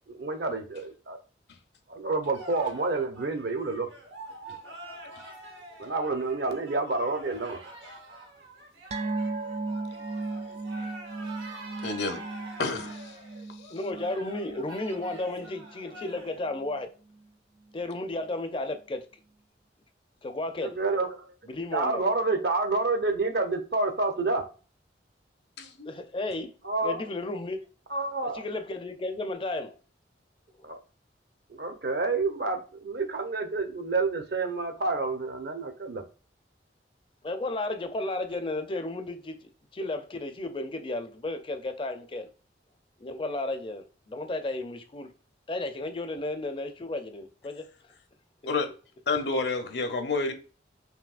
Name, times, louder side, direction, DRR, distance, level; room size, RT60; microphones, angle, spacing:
voice 1, 0.1-0.6 1.1-1.2 1.9-3.9 5.8-7.6 20.6-21.3 21.7-24.4 26.6-27.0 27.9-28.4 30.6-30.8 31.5-36.0, right 3 dB, 60° right, 0.8 m, -28 dB
sound 1, 2.3-16.5, right 2 dB, 80° right, 1.5 m, -46 dB
sound 2, 8.9-15.7 16.0-16.2 16.6-16.7, right 3 dB, 35° right, 0.4 m, -36 dB
voice 2, 11.8-12.2 12.6-13.2 25.8-25.9 48.5-48.7 49.1-50.3, left 3 dB, 65° left, 0.8 m, -29 dB
voice 3, 13.7-16.9 17.7-19.0 20.2-20.8 21.5-22.0 25.9-26.5 26.8-27.7 28.3-29.8 30.6-30.7 37.2-42.3 43.0-45.1 45.5-47.7, left 2 dB, 30° left, 0.5 m, -33 dB
5.7 x 2.7 x 2.4 m
head